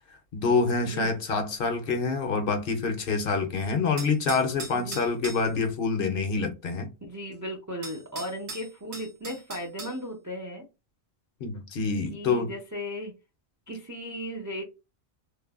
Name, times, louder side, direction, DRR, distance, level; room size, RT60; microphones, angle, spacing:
voice 1, 0.3-6.9 11.4-12.5, left 4 dB, 60° left, 0.7 m, -26 dB
sound 1, 4.0-5.5 7.3-7.4 7.8-10.0, right 3 dB, 75° right, 1.4 m, -40 dB
voice 2, 7.0-10.6 12.1-13.1 13.7-14.6, equal, 30° right, 0.3 m, -36 dB
3.1 x 2.0 x 2.3 m
omnidirectional pair, 1.1 m